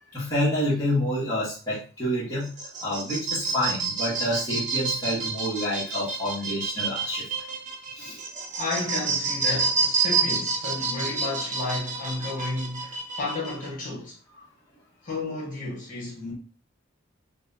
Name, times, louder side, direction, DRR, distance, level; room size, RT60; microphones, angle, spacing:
voice 1, 0.1-2.5 2.8-7.3 7.9-8.2, left 1 dB, 15° left, 1.3 m, -28 dB
sound 1, 2.4-13.7, right 4 dB, 35° right, 0.7 m, -29 dB
voice 2, 8.6-14.1 15.0-16.3, left 2 dB, 40° left, 1.6 m, -32 dB
5.9 x 2.3 x 2.7 m
head